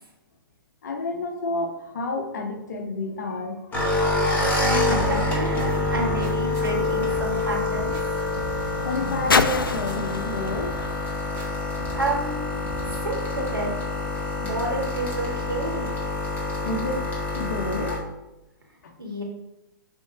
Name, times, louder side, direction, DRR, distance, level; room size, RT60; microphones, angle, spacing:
voice 1, 0.8-3.8 8.8-10.8 16.6-18.0 18.8-18.9, left 2 dB, 50° left, 5 dB, 1.1 m, -30 dB
sound 1, 3.7-18.0, left 2 dB, 15° left, 1.9 m, -26 dB
sound 2, 4.3-4.6 4.9-5.3 5.6-6.7 7.1-7.5 7.7-8.7 9.0-10.2 10.5-10.9 11.4-12.2 12.6-12.9, right 2 dB, 25° right, 2.3 m, -39 dB
voice 2, 4.7-8.0 11.9-12.6 12.8-13.7 14.4-15.9 19.0-19.2, right 1 dB, 80° right, -2 dB, 2.2 m, -30 dB
sound 3, 7.5-12.3 13.1-13.2, left 4 dB, 75° left, 0.5 m, -30 dB
6.8 x 3.8 x 4.8 m, 0.92 s
figure-of-eight pair, 120°, 12 cm